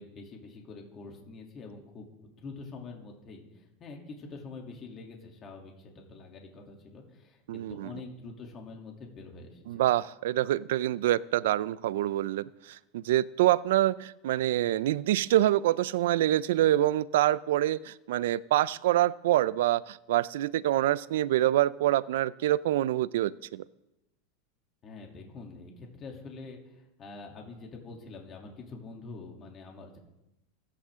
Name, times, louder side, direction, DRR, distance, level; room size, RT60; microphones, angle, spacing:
voice 1, 0.0-9.8 24.8-30.0, left 3 dB, 30° left, 1 dB, 2.9 m, -46 dB
voice 2, 7.5-7.9 9.7-23.6, right 14 dB, 80° right, 19 dB, 0.5 m, -26 dB
26.5 x 10.0 x 3.7 m, 0.92 s
supercardioid pair, 135°, 0 cm